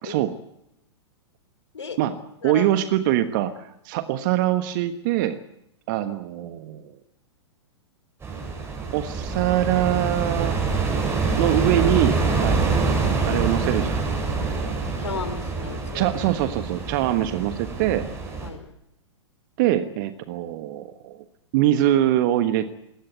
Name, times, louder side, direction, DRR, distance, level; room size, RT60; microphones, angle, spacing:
voice 1, 0.0-0.3 2.0-2.2 2.4-5.4 5.9-6.8 8.9-10.6 11.4-14.1 14.3-14.8 15.9-18.1 19.6-21.2 21.5-22.7, right 12 dB, 45° right, 10 dB, 1.3 m, -23 dB
sound 1, 8.2-18.5, right 4 dB, 15° right, 7.5 m, -25 dB
voice 2, 14.8-16.2 18.4-18.7, left 5 dB, 75° left, 12 dB, 3.3 m, -34 dB
20.5 x 18.0 x 9.3 m, 0.83 s
figure-of-eight pair, 110°, 15 cm